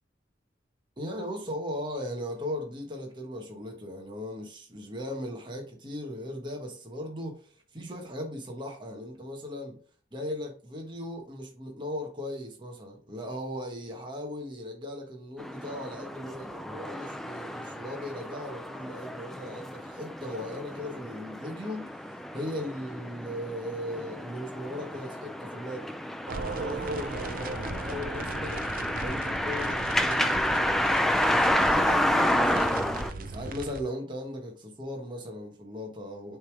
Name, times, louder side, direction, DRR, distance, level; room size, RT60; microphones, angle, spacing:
voice 1, 1.0-9.8 10.1-25.9 26.5-28.7 29.0-36.4, left 1 dB, 25° right, 1.2 m, -38 dB
sound 1, 15.4-33.1, left 1 dB, ahead, 0.4 m, -30 dB
sound 2, 26.3-33.8, right 3 dB, 50° right, 0.6 m, -38 dB
6.6 x 3.5 x 4.6 m
head